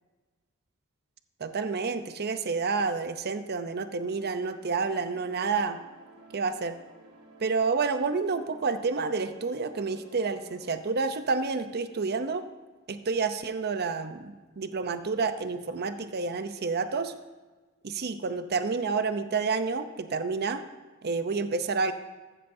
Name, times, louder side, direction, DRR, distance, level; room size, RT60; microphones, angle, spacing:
voice 1, 1.4-5.8 6.3-6.7 7.4-12.4 12.9-17.1 17.8-20.6 21.0-21.9, right 4 dB, 50° right, 10 dB, 0.7 m, -29 dB
sound 1, 4.0-10.8, right 2 dB, 90° right, 2.1 m, -54 dB
14.5 x 13.5 x 2.7 m, 1.3 s
head